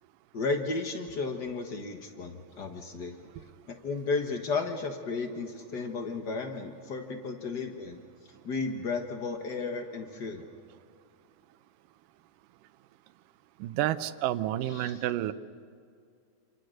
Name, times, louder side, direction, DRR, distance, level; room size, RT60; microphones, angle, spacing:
voice 1, 0.3-3.3 3.7-8.0 8.4-10.5 14.7-15.0, left 4 dB, 85° left, 5 dB, 0.9 m, -33 dB
voice 2, 13.6-15.3, right 13 dB, 75° right, 10 dB, 2.2 m, -30 dB
28.5 x 27.5 x 6.5 m, 2.3 s
omnidirectional pair, 4.2 m